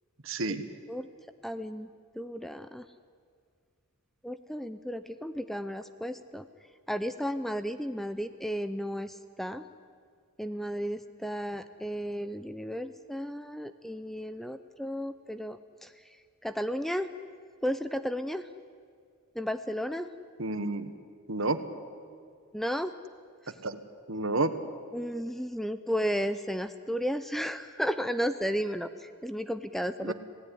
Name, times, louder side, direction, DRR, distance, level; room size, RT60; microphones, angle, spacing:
voice 1, 0.2-0.6 20.4-20.9 21.3-21.6 23.6-23.8 24.1-24.5 30.0-30.1, right 2 dB, 65° right, 10 dB, 1.5 m, -30 dB
voice 2, 1.4-1.9 2.1-2.8 4.2-6.5 6.9-9.6 10.4-15.9 16.4-17.1 17.6-18.5 19.4-20.1 22.5-22.9 24.9-30.1, equal, ahead, 11 dB, 0.6 m, -33 dB
26.5 x 18.0 x 10.0 m, 2.1 s
head